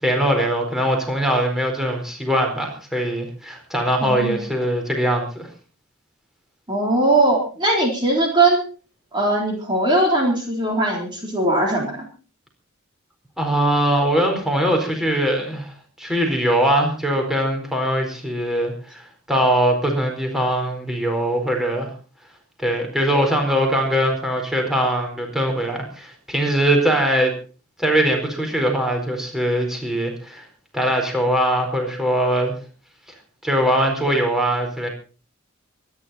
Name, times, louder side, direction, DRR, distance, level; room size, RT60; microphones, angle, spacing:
voice 1, 0.0-5.5 13.4-19.0 19.3-21.9 22.6-27.3 27.8-30.4 30.7-32.5 33.4-34.9, right 1 dB, ahead, 2 dB, 4.5 m, -21 dB
voice 2, 4.0-4.4 6.7-8.6 9.1-12.0, right 2 dB, 20° right, 0 dB, 3.9 m, -20 dB
25.0 x 10.5 x 4.3 m, 0.36 s
head